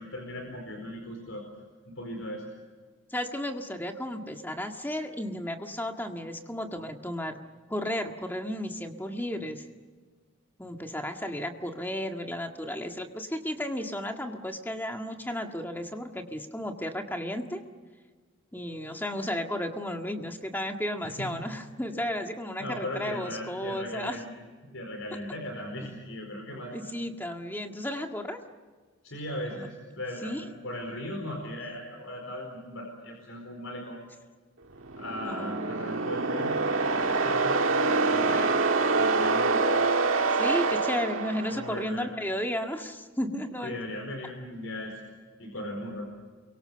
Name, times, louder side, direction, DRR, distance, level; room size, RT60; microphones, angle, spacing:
voice 1, 0.0-1.4 1.8-2.4 21.0-21.4 22.6-24.3 24.6-26.7 29.0-34.0 35.0-38.6 38.9-39.6 41.5-42.1 43.3-45.0 45.4-46.1, left 1 dB, 75° left, 1 dB, 4.7 m, -38 dB
voice 2, 3.1-7.4 7.7-9.6 10.6-17.6 18.5-24.2 26.7-28.4 29.5-29.7 30.2-30.4 35.2-35.6 38.3-38.6 40.4-43.8, left 1 dB, 10° left, 4 dB, 1.8 m, -33 dB
sound 1, 34.8-41.9, right 3 dB, 80° right, 1.8 m, -26 dB
29.0 x 23.5 x 6.9 m, 1.4 s
head